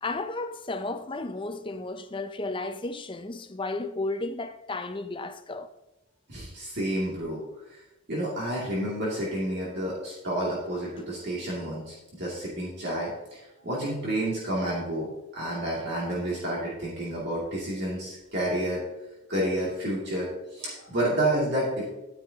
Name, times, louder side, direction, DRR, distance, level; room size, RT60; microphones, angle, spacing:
voice 1, 0.0-5.7, left 2 dB, 25° left, 0.6 m, -33 dB
voice 2, 6.3-7.4 7.7-7.8 8.1-15.1 15.3-18.8 19.3-21.8, right 1 dB, 50° right, 2.5 m, -30 dB
11.5 x 9.6 x 2.9 m
head